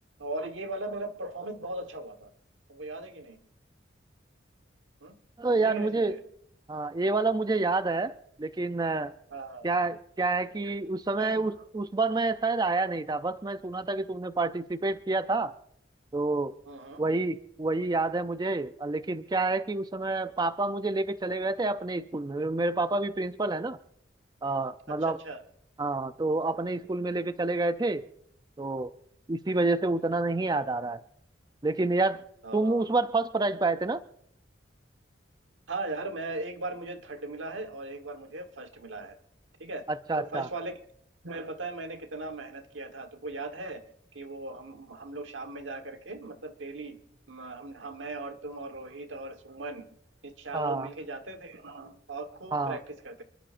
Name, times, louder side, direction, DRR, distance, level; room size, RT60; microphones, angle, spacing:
voice 1, 0.2-2.3 2.7-3.4 5.0-5.2 5.5-6.2 9.3-9.7 11.2-11.6 16.6-17.0 24.9-25.4 32.4-32.8 35.7-39.2 39.6-39.8 40.1-40.8 41.2-43.8 44.1-47.0 47.3-49.8 50.2-53.2, right 2 dB, 85° right, 7 dB, 1.4 m, -38 dB
voice 2, 5.4-6.1 6.7-9.1 9.6-15.5 16.1-16.5 17.0-23.8 24.4-25.2 25.8-28.1 28.6-28.9 29.3-31.0 31.6-32.2 32.5-34.0 39.9-40.5 50.5-50.9 52.5-52.8, right 3 dB, 20° right, 11 dB, 0.4 m, -28 dB
28.5 x 11.5 x 2.5 m, 0.72 s
head